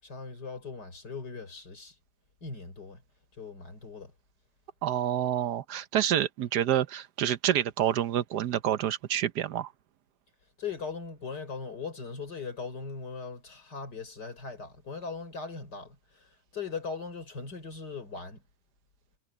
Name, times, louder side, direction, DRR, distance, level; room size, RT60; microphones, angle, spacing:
voice 1, 0.0-2.0 2.4-3.0 3.4-4.1 10.6-18.4, left 5 dB, 85° left, 5.6 m, -39 dB
voice 2, 4.8-9.7, right 11 dB, 75° right, 1.4 m, -28 dB
omnidirectional pair, 1.8 m